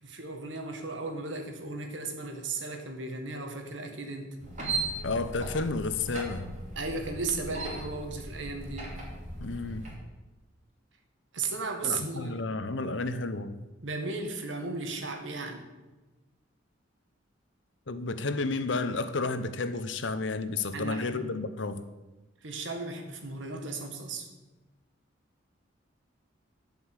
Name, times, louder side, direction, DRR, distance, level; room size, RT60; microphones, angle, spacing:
voice 1, 0.0-4.4 6.7-9.0 11.3-12.3 13.8-15.7 20.7-21.3 22.4-24.3, right 3 dB, 80° right, 4 dB, 1.8 m, -35 dB
sound 1, 4.4-10.0, right 2 dB, 40° right, 2.8 m, -37 dB
voice 2, 5.0-6.5 9.4-9.8 11.8-13.6 17.9-21.8, left 3 dB, 75° left, 11 dB, 0.8 m, -31 dB
11.5 x 5.4 x 8.3 m, 1.1 s
head